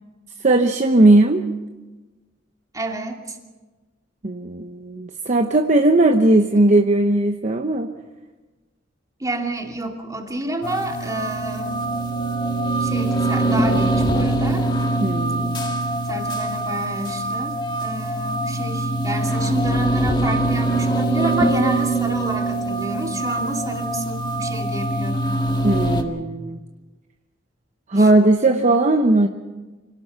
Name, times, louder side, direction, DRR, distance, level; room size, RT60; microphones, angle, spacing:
voice 1, 0.4-1.4 4.2-7.9 15.0-15.6 25.6-26.6 27.9-29.3, right 2 dB, 40° right, 5 dB, 0.9 m, -17 dB
voice 2, 2.7-3.4 9.2-11.8 12.8-14.7 16.1-25.4 27.9-28.1, right 2 dB, 20° right, 2 dB, 2.6 m, -29 dB
sound 1, 10.6-26.0, right 1 dB, 25° left, 1.8 m, -23 dB
26.0 x 17.5 x 5.7 m, 1.2 s
head